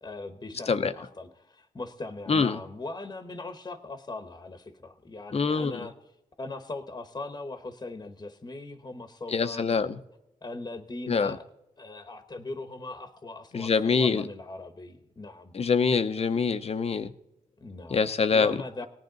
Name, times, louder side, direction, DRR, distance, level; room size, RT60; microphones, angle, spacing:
voice 1, 0.0-5.9 6.4-9.9 10.4-11.4 11.8-15.5 17.6-18.0 18.3-18.8, left 2 dB, 30° left, 8 dB, 1.0 m, -40 dB
voice 2, 2.3-2.6 5.3-5.7 9.3-10.0 11.1-11.4 13.5-14.2 15.5-17.1 17.9-18.8, left 5 dB, 45° left, 11 dB, 0.7 m, -25 dB
18.5 x 10.5 x 4.0 m, 0.84 s
cardioid pair, 90°, 15 cm